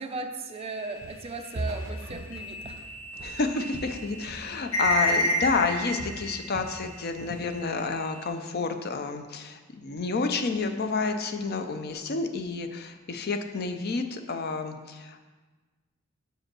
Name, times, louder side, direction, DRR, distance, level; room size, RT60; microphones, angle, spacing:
voice 1, 0.0-2.8 3.2-3.3, right 3 dB, 30° right, 6 dB, 0.4 m, -37 dB
sound 1, 0.7-7.0 7.3-8.2, left 1 dB, 85° left, 0.9 m, -31 dB
Walk footsteps, 1.0-1.3 1.5-4.6 4.8-5.2 5.4-6.8 7.1-7.5, right 1 dB, 65° right, 1.0 m, -39 dB
voice 2, 3.2-15.2, left 4 dB, 50° left, 7 dB, 0.5 m, -30 dB
5.2 x 5.0 x 6.0 m, 1.3 s
head